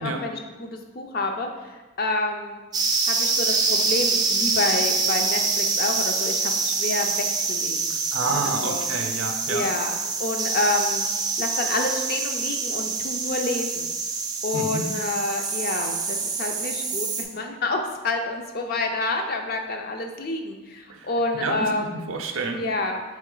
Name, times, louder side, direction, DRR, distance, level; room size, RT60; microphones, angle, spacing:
voice 1, 0.0-2.6 3.1-8.0 8.3-8.8 9.5-9.9 10.2-11.0 11.4-13.9 14.4-22.1 22.5-23.0, left 2 dB, 45° left, 4 dB, 0.4 m, -28 dB
sound 1, 2.7-17.2, right 4 dB, 20° right, 0.3 m, -26 dB
voice 2, 8.1-9.7 14.5-14.9 20.9-21.7 22.1-22.6, right 3 dB, 80° right, 5 dB, 0.5 m, -29 dB
3.9 x 3.2 x 3.8 m, 1.2 s
head